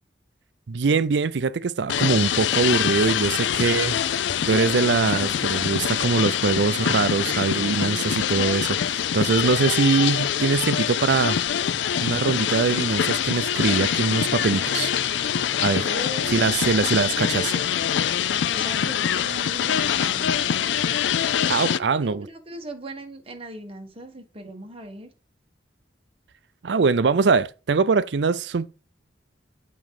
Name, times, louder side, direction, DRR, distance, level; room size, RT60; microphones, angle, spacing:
voice 1, 0.7-4.2 4.5-11.4 12.0-14.9 15.6-15.9 16.3-17.5 21.5-22.3 26.6-28.7, right 4 dB, 70° right, 0.5 m, -22 dB
sound 1, 1.9-21.8, left 9 dB, 80° left, 0.4 m, -24 dB
sound 2, 1.9-21.3, right 2 dB, 5° right, 4.8 m, -51 dB
sound 3, 13.7-21.0, left 3 dB, 55° left, 3.2 m, -42 dB
voice 2, 15.7-17.9 18.5-20.6 21.4-25.1, right 1 dB, 35° right, 1.6 m, -39 dB
7.6 x 5.1 x 4.7 m
head